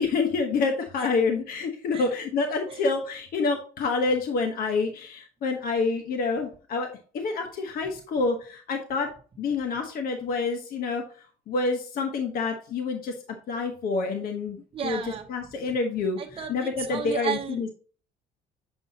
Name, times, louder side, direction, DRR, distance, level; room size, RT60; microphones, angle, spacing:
voice 1, 0.0-6.9 7.1-9.1 9.4-11.0 11.5-14.6 14.8-15.0 15.3-16.2 16.5-17.7, left 4 dB, 60° left, 4 dB, 1.2 m, -27 dB
voice 2, 14.7-15.3 16.2-17.7, right 7 dB, 35° right, 2 dB, 0.9 m, -34 dB
7.8 x 5.3 x 2.9 m, 0.42 s
cardioid pair, 110°, 17 cm